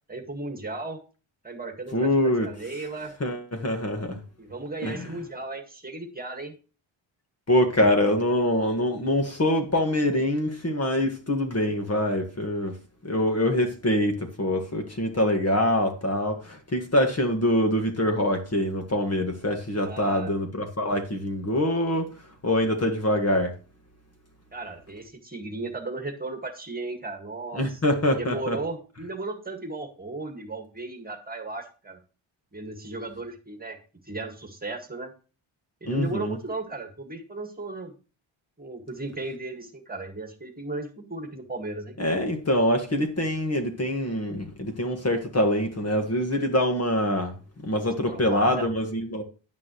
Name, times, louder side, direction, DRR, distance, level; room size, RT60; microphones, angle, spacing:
voice 1, 0.1-1.0 1.4-3.1 4.4-6.5 19.8-20.3 24.5-27.8 28.2-32.0 32.5-33.8 34.0-35.1 35.8-37.9 38.6-42.0 48.1-48.7, right 2 dB, 20° right, 1.9 m, -35 dB
voice 2, 1.9-2.5 3.2-4.2 4.8-5.2 7.5-12.8 13.0-22.1 22.4-23.5 27.6-28.6 35.8-36.3 42.0-47.3 47.6-49.2, left 1 dB, 30° left, 1.7 m, -24 dB
11.0 x 9.5 x 3.2 m
wide cardioid pair, 115°, 49 cm